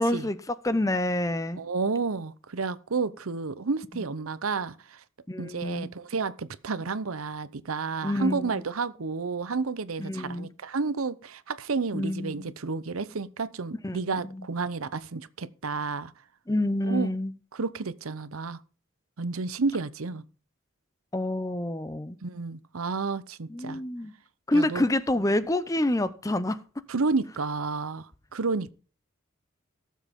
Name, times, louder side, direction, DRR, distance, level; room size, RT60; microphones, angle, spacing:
voice 1, 0.0-1.6 5.3-5.9 8.0-8.6 10.0-10.5 11.9-12.5 13.8-14.5 16.5-17.3 21.1-22.2 23.5-24.1 24.5-26.6, left 1 dB, 15° left, 0.6 m, -28 dB
voice 2, 1.6-5.0 5.4-16.1 16.8-17.1 17.5-18.6 19.2-20.2 22.2-23.8 24.5-24.9 26.9-28.7, right 4 dB, 85° right, 0.8 m, -31 dB
17.5 x 7.4 x 3.6 m
head